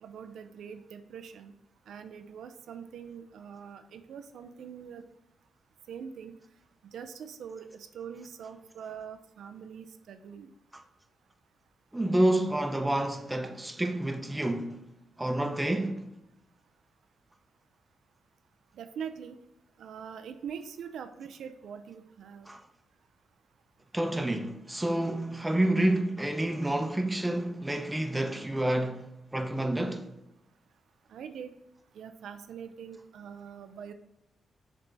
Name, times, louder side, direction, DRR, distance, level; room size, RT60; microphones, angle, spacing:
voice 1, 0.0-1.5 1.9-5.0 5.9-6.4 6.9-10.5 13.4-13.6 18.7-19.4 19.8-22.5 31.1-31.5 31.9-33.9, right 7 dB, 85° right, 0.4 m, -43 dB
voice 2, 11.9-14.8 15.2-16.1 22.5-22.6 23.9-30.1, right 1 dB, 10° right, 0.7 m, -29 dB
6.8 x 3.5 x 4.0 m
cardioid pair, 105°, 0 cm